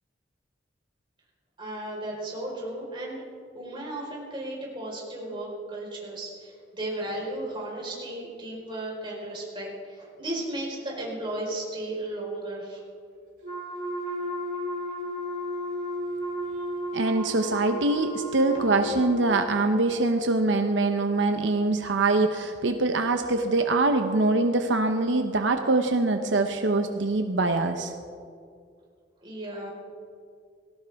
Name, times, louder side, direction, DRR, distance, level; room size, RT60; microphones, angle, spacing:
voice 1, 1.6-3.2 3.5-12.8 29.2-29.7, right 1 dB, 25° right, -3 dB, 4.6 m, -35 dB
Wind instrument woodwind instrument, 13.4-19.2, equal, 50° right, 4.4 m, -33 dB
voice 2, 16.9-27.9, right 2 dB, 85° right, 6 dB, 0.8 m, -24 dB
19.0 x 16.5 x 3.6 m, 2.3 s
head